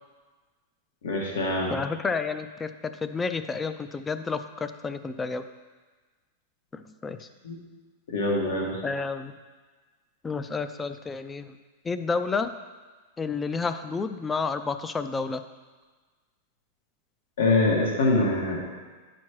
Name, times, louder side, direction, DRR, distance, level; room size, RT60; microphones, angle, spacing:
voice 1, 1.0-1.7 7.4-7.5 8.1-8.8 17.4-18.6, left 2 dB, 80° left, -2 dB, 1.9 m, -24 dB
voice 2, 1.7-2.7 3.0-5.4 6.7-7.2 8.8-9.3 10.2-11.5 11.9-12.5 13.2-15.4, left 4 dB, 10° left, 10 dB, 0.3 m, -30 dB
10.0 x 5.9 x 3.1 m, 1.4 s
supercardioid pair, 155°, 0 cm